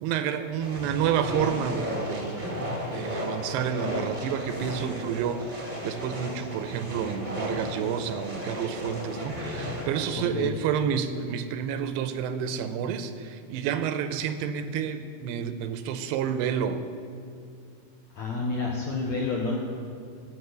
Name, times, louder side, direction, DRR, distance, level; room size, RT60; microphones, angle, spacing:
voice 1, 0.0-2.5 2.9-16.8, right 8 dB, 85° right, 9 dB, 2.6 m, -29 dB
sound 1, 0.6-10.1, equal, 40° right, 0.6 m, -34 dB
voice 2, 10.1-10.6 18.1-19.6, left 3 dB, 70° left, -2 dB, 1.7 m, -29 dB
15.5 x 6.1 x 7.9 m, 2.4 s
omnidirectional pair, 4.7 m